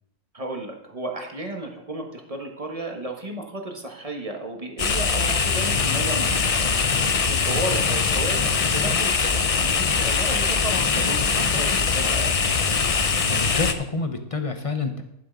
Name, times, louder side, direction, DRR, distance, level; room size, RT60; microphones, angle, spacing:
voice 1, 0.3-6.6 6.9-12.4, right 2 dB, 25° right, 3 dB, 1.3 m, -33 dB
sound 1, 4.8-13.7, left 5 dB, 50° left, 0.4 m, -22 dB
voice 2, 13.3-15.0, left 3 dB, 30° left, 7 dB, 0.8 m, -28 dB
10.5 x 7.5 x 5.3 m, 0.80 s
omnidirectional pair, 1.5 m